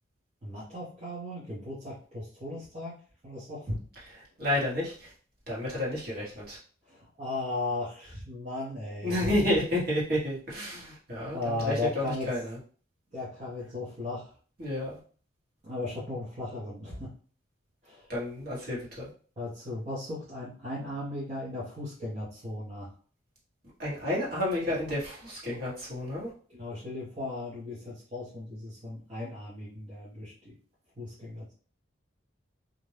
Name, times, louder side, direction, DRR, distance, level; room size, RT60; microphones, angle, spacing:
voice 1, 0.4-2.9 3.2-3.8 6.8-9.3 11.3-12.3 13.1-14.3 15.6-17.1 17.8-18.1 19.4-22.9 26.5-30.5 31.0-31.5, left 2 dB, 30° right, -8 dB, 0.7 m, -36 dB
voice 2, 4.4-5.1 5.5-6.6 9.0-12.6 14.6-15.0 18.1-19.1 23.8-26.3, left 1 dB, 45° right, -6 dB, 1.2 m, -30 dB
2.5 x 2.1 x 3.1 m, 0.43 s
head